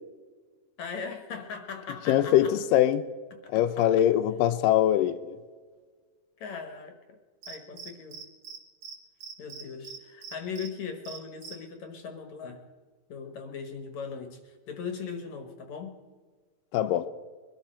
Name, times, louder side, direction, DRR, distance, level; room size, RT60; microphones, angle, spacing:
voice 1, 0.8-2.5 3.3-3.9 6.4-7.2 7.5-8.2 9.4-12.6 13.1-16.0, left 5 dB, 60° left, 2.5 m, -39 dB
voice 2, 2.1-3.0 3.5-5.4 16.7-17.1, left 11 dB, 85° left, 2.3 m, -23 dB
Cricket, 7.4-8.6 8.8-9.0 9.2-10.7 11.1-11.5, right 7 dB, 70° right, 3.0 m, -42 dB
23.0 x 13.0 x 4.4 m
omnidirectional pair, 3.8 m